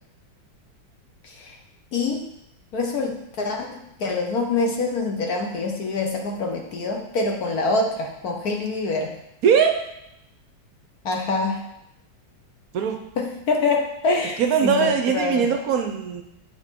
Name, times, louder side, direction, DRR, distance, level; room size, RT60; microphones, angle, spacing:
voice 1, 1.2-1.6 1.9-2.2 2.7-9.1 11.0-11.6 13.2-15.5, left 3 dB, 60° left, 2 dB, 1.2 m, -25 dB
voice 2, 9.4-9.8 12.7-13.0 14.4-16.2, right 7 dB, 65° right, 5 dB, 0.9 m, -20 dB
9.0 x 3.8 x 5.1 m, 0.84 s
omnidirectional pair, 2.1 m